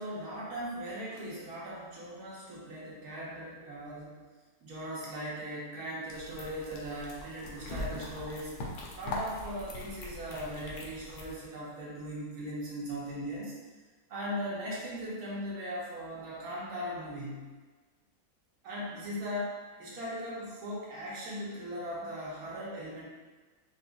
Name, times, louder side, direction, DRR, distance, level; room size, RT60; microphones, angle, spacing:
voice 1, 0.0-4.2 4.6-8.5 8.9-13.5 14.1-17.5 18.6-23.0, equal, 60° right, -6 dB, 1.3 m, -39 dB
sound 1, 6.1-11.3, left 2 dB, 80° left, 1.2 m, -41 dB
4.9 x 2.1 x 2.4 m, 1.3 s
omnidirectional pair, 1.9 m